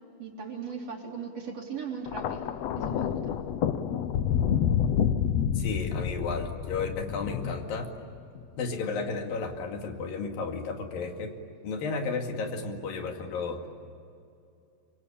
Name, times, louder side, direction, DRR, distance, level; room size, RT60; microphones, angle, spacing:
voice 1, 0.2-3.4, right 6 dB, 50° right, 0 dB, 4.6 m, -38 dB
Thunder, 2.1-8.4 9.4-9.7, left 9 dB, 70° left, 1.7 m, -29 dB
voice 2, 5.6-7.9 8.6-11.4 11.6-13.7, left 4 dB, 90° left, 4 dB, 4.0 m, -33 dB
27.0 x 24.5 x 8.8 m, 2.6 s
omnidirectional pair, 4.0 m